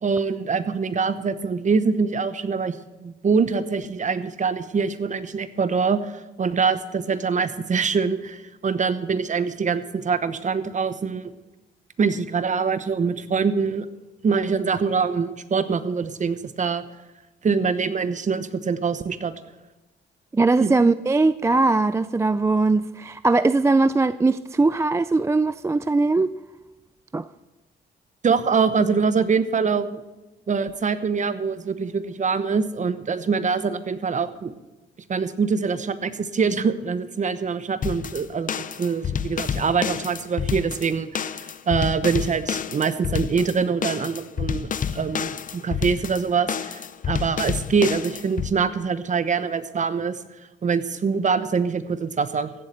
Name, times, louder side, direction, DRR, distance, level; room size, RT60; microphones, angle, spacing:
voice 1, 0.0-11.3 12.0-13.8 14.2-16.8 17.4-19.3 20.6-20.7 28.2-30.0 30.5-34.5 35.1-38.5 38.8-41.2 41.7-50.2 50.6-52.5, right 5 dB, 40° right, 1.0 m, -24 dB
voice 2, 20.3-26.3 27.1-27.3, right 3 dB, 15° right, 0.3 m, -20 dB
sound 1, 37.8-48.5, left 7 dB, 40° left, 0.7 m, -29 dB
15.5 x 7.6 x 6.8 m
cardioid pair, 90°, 20 cm